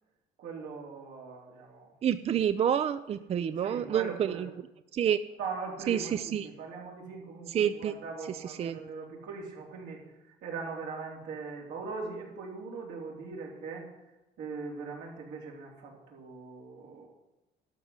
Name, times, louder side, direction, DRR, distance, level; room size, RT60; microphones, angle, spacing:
voice 1, 0.4-2.0 3.6-4.5 5.4-17.1, right 4 dB, 80° right, -2 dB, 3.7 m, -41 dB
voice 2, 2.0-4.5 4.9-5.2 5.9-6.5 7.5-7.9 8.6-8.8, right 9 dB, 40° right, 13 dB, 0.4 m, -28 dB
12.5 x 5.9 x 8.0 m, 0.97 s
cardioid pair, 110°, 17 cm